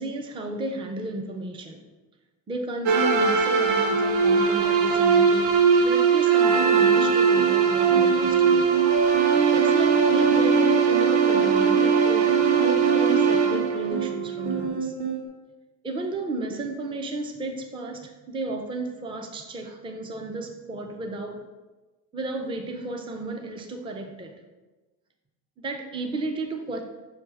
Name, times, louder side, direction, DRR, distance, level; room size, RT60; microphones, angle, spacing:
voice 1, 0.0-1.8 2.5-8.7 9.1-14.9 15.8-21.4 22.1-24.4 25.6-26.8, right 2 dB, 15° right, 4 dB, 0.4 m, -33 dB
sound 1, 2.9-14.7, right 6 dB, 75° right, 0.8 m, -20 dB
sound 2, 6.5-15.2, right 7 dB, 55° right, 1.6 m, -31 dB
6.1 x 3.3 x 4.7 m, 1.2 s
cardioid pair, 150°, 40 cm